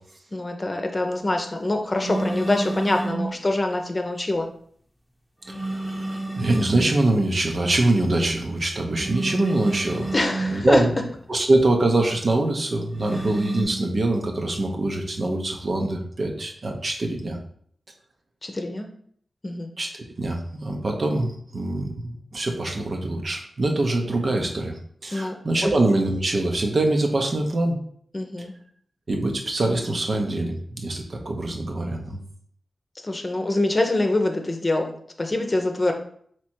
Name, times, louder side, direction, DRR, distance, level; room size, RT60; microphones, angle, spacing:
voice 1, 0.3-4.5 10.1-10.8 18.4-18.9 19.4-19.7 25.1-25.3 25.6-25.7 28.1-28.5 33.0-35.9, left 2 dB, 35° left, 3 dB, 0.7 m, -24 dB
sound 1, 2.0-3.3 5.5-6.9 9.0-10.5 13.0-13.6, right 2 dB, 5° right, 1.0 m, -29 dB
voice 2, 5.5-10.1 10.5-10.9 11.3-17.4 19.8-24.7 25.0-27.8 29.1-32.2, right 2 dB, 60° right, 2 dB, 0.8 m, -24 dB
3.3 x 3.0 x 4.4 m, 0.62 s
cardioid pair, 40°, 0 cm